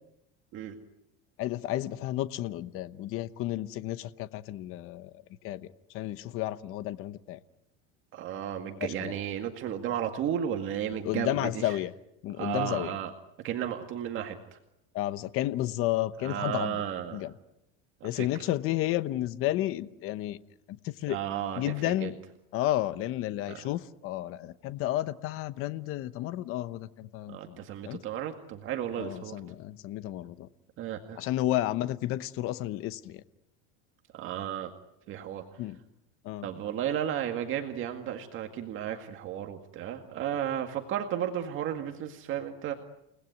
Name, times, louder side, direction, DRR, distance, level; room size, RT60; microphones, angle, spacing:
voice 1, 1.4-5.1 5.4-7.4 8.8-9.1 11.0-11.9 12.2-12.9 14.9-16.8 17.1-17.3 18.0-20.4 20.8-21.2 21.6-22.2 22.5-27.6 27.8-28.0 29.0-30.5 31.2-33.2 35.6-35.8 36.2-36.5, left 14 dB, 45° left, 14 dB, 1.0 m, -32 dB
voice 2, 8.1-11.8 12.4-13.1 13.4-14.6 16.2-17.3 18.0-18.4 21.1-22.1 23.5-23.7 27.3-29.4 30.8-31.2 34.1-34.7 35.1-35.4 36.4-42.7, right 10 dB, 40° right, 4 dB, 2.0 m, -34 dB
30.0 x 19.5 x 9.4 m, 0.84 s
cardioid pair, 160°, 31 cm